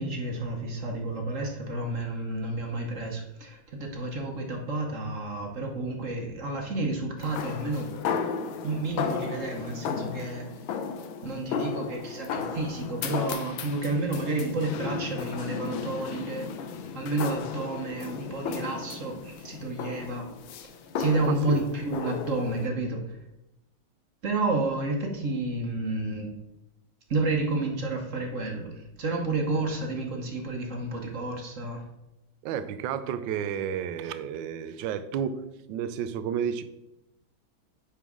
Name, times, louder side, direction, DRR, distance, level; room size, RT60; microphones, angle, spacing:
voice 1, 0.0-7.9 8.6-10.5 11.2-16.5 16.9-20.3 21.0-23.2 24.2-26.3 27.1-31.8, right 2 dB, 50° right, 2 dB, 1.1 m, -30 dB
sound 1, 7.2-22.7, left 6 dB, 80° left, 1.5 m, -35 dB
voice 2, 21.3-21.6 32.4-35.4 35.7-36.6, right 8 dB, 75° right, 11 dB, 1.3 m, -31 dB
10.0 x 4.6 x 3.7 m, 0.92 s
omnidirectional pair, 2.3 m